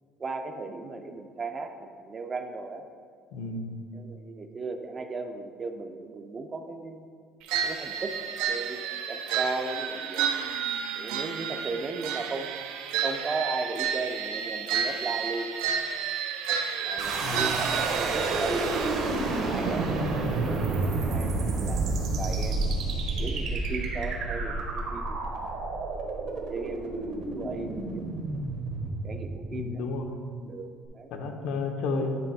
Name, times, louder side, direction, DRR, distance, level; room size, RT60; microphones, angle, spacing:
voice 1, 0.2-2.8 3.9-7.1 7.6-8.2 8.5-10.4 10.9-12.6 13.0-15.5 16.8-17.6 17.9-20.1 20.3-22.7 23.2-25.6 26.3-28.2 28.9-29.9 30.4-31.1, right 3 dB, 25° right, 6 dB, 0.4 m, -36 dB
voice 2, 3.3-3.8 17.2-17.6 29.5-30.2 31.1-32.2, left 3 dB, 80° left, 4 dB, 0.8 m, -32 dB
sound 1, 7.5-18.9, right 7 dB, 85° right, 0.4 m, -31 dB
Energy Release, 17.0-29.9, right 3 dB, 55° right, 0.9 m, -30 dB
9.1 x 3.3 x 4.6 m, 2.1 s
cardioid pair, 165°, 0 cm